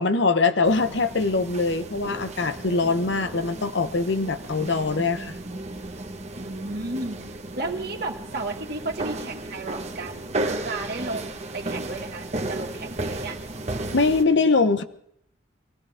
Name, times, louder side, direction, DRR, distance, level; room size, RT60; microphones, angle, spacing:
voice 1, 0.0-5.3 13.9-14.8, left 3 dB, 65° left, 9 dB, 1.0 m, -22 dB
sound 1, 0.6-14.2, right 2 dB, 35° right, 1.3 m, -34 dB
voice 2, 6.3-7.3 7.6-13.4, right 2 dB, 55° right, 2 dB, 2.0 m, -33 dB
23.0 x 16.5 x 3.6 m, 0.69 s
head